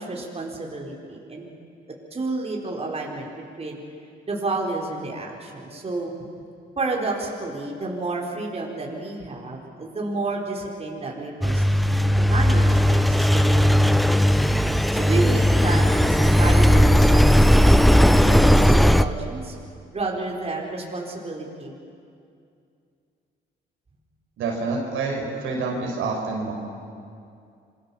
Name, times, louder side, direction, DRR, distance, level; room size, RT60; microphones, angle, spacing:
voice 1, 0.0-1.4 2.1-3.8 4.3-6.1 6.8-13.9 14.9-19.5 19.9-21.8, right 3 dB, 30° right, -1 dB, 5.0 m, -31 dB
Engine, 11.4-19.0, equal, ahead, 0.8 m, -17 dB
voice 2, 24.4-26.5, right 3 dB, 85° right, 0 dB, 5.3 m, -27 dB
27.0 x 23.5 x 7.4 m, 2.4 s
cardioid pair, 90°, 20 cm